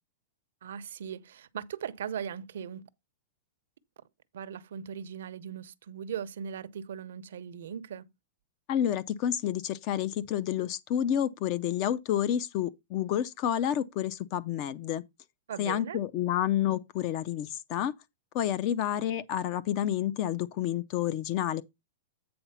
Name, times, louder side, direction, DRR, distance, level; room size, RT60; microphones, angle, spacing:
voice 1, 0.6-2.8 4.3-8.1 15.5-16.0, right 8 dB, 80° right, 0.7 m, -39 dB
voice 2, 8.7-15.0 15.6-17.9 18.3-21.6, left 10 dB, 35° left, 0.5 m, -29 dB
8.6 x 3.9 x 5.6 m
supercardioid pair, 155°, 0 cm